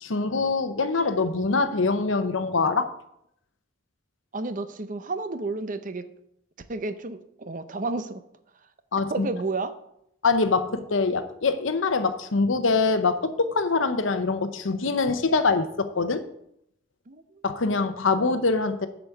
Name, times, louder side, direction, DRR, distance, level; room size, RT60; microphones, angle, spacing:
voice 1, 0.0-2.9 8.9-9.3 10.2-16.2 17.4-18.9, left 4 dB, 80° left, 0.8 m, -24 dB
voice 2, 4.3-6.1 6.7-8.2 9.1-9.8 17.1-17.4, right 3 dB, 40° right, 0.7 m, -31 dB
7.9 x 5.1 x 7.3 m
head